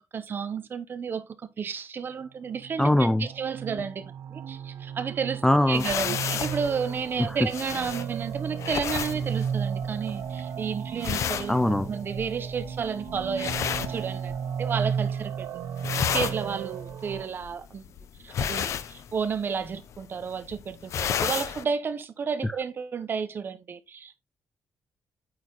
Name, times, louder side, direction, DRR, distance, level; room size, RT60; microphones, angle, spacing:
voice 1, 0.1-11.6 11.9-14.3 14.6-15.5 15.9-17.9 18.2-24.2, right 6 dB, 40° right, 0.8 m, -32 dB
sound 1, 2.5-17.3, right 7 dB, 70° right, 0.5 m, -34 dB
voice 2, 2.8-3.3 5.4-5.8 11.5-11.9, left 1 dB, 10° left, 0.3 m, -21 dB
sound 2, 5.7-14.7 15.0-15.4 15.7-21.6, left 9 dB, 70° left, 0.5 m, -32 dB
8.7 x 4.3 x 3.0 m
wide cardioid pair, 155°, 5 cm